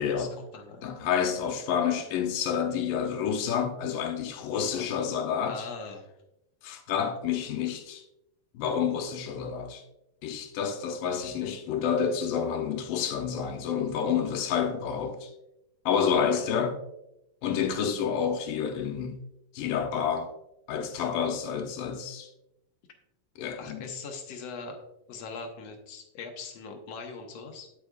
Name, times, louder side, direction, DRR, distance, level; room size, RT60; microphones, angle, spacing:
voice 1, 0.0-0.3 0.8-5.7 6.6-8.0 8.5-9.8 10.2-15.3 15.9-16.8 17.4-19.2 19.5-20.3 20.7-22.3 23.4-23.9, left 7 dB, 85° left, 2.5 m, -29 dB
voice 2, 0.5-0.9 4.6-4.9 5.5-6.1 16.3-16.4 23.6-27.7, left 4 dB, 60° left, 1.9 m, -41 dB
9.9 x 8.5 x 2.3 m
omnidirectional pair, 3.9 m